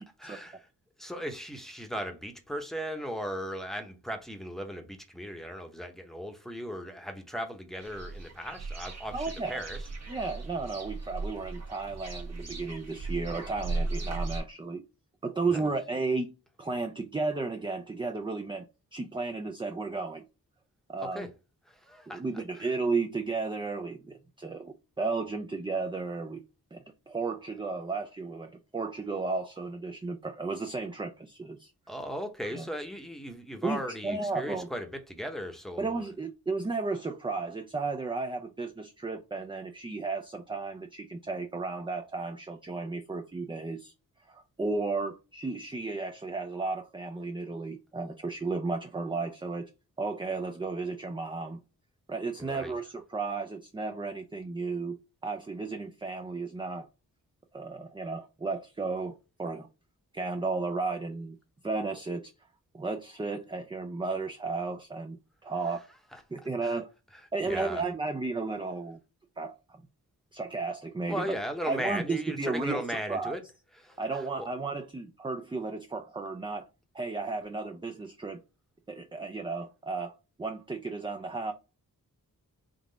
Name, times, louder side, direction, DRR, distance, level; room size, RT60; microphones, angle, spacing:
voice 1, 0.2-0.7 1.0-9.9 15.5-15.7 21.0-21.3 21.7-22.7 31.9-36.1 52.4-52.7 66.1-66.2 66.6-66.8 67.4-67.8 71.1-73.4 73.8-74.5, equal, ahead, 0.8 m, -37 dB
sound 1, 7.8-14.4, right 3 dB, 45° right, 1.2 m, -37 dB
voice 2, 9.1-9.6 10.1-14.8 15.2-18.7 18.9-20.3 20.9-21.3 22.1-26.4 26.7-31.7 32.5-32.6 33.6-34.7 35.8-43.9 44.3-49.7 50.0-51.6 52.1-55.0 55.2-56.9 57.5-59.7 60.1-61.4 61.6-62.3 62.7-65.8 66.3-66.9 67.3-69.0 69.4-69.8 70.3-71.4 71.7-72.8 73.1-73.3 74.0-76.7 76.9-78.4 78.9-80.1 80.4-81.5, right 3 dB, 15° right, 0.3 m, -34 dB
3.8 x 2.4 x 3.9 m
wide cardioid pair, 70°, 37 cm